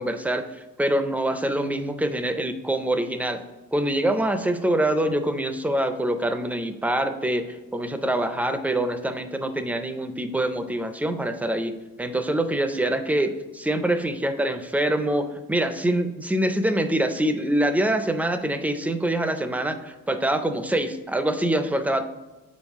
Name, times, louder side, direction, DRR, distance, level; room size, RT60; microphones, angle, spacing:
voice 1, 0.0-3.4 3.7-22.0, right 1 dB, 5° right, 8 dB, 0.4 m, -25 dB
7.2 x 4.8 x 3.5 m, 1.1 s
cardioid pair, 155°, 34 cm